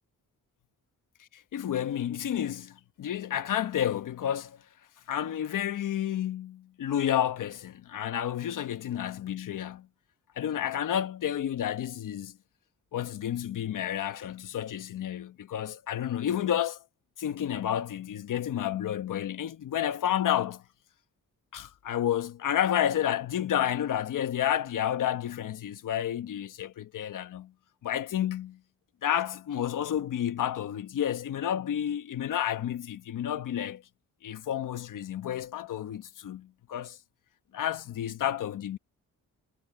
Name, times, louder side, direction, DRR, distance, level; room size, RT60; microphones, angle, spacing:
voice 1, 1.5-4.6 5.1-9.9 10.4-12.3 12.9-16.8 17.2-20.6 21.5-27.5 27.8-28.6 29.0-33.8 34.2-37.0 37.5-38.8, left 10 dB, 70° left, 1.2 m, -30 dB
wide cardioid pair, 135°, 33 cm